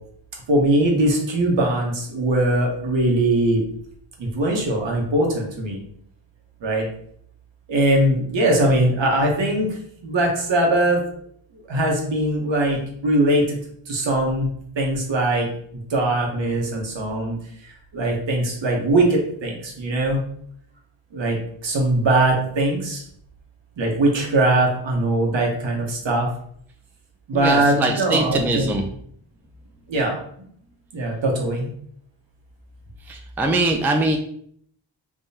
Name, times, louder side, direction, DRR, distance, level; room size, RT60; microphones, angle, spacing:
voice 1, 0.5-3.6 4.2-5.8 6.6-6.9 7.7-9.7 10.0-11.0 11.7-13.5 13.9-14.5 14.8-15.5 15.9-17.4 17.9-20.2 21.1-21.4 21.6-23.0 23.8-26.3 27.3-28.7 29.9-30.2 30.9-31.7, right 1 dB, 70° right, 0 dB, 1.1 m, -21 dB
voice 2, 27.3-28.9 33.1-34.2, right 2 dB, 5° right, 3 dB, 0.3 m, -22 dB
3.7 x 3.0 x 2.7 m, 0.64 s
wide cardioid pair, 100°, 46 cm